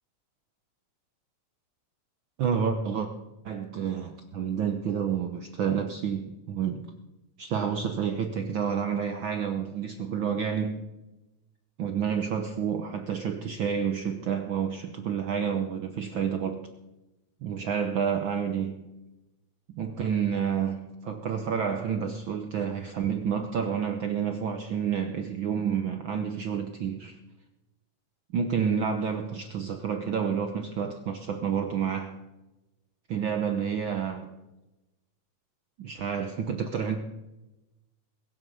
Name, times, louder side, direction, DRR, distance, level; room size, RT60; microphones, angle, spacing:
voice 1, 2.4-3.1 3.4-6.8 7.4-10.8 11.8-16.7 17.4-18.8 19.7-27.2 28.3-32.2 33.1-34.3 35.8-37.0, right 7 dB, 65° right, 1.2 m, -29 dB
21.5 x 8.0 x 6.9 m
omnidirectional pair, 3.3 m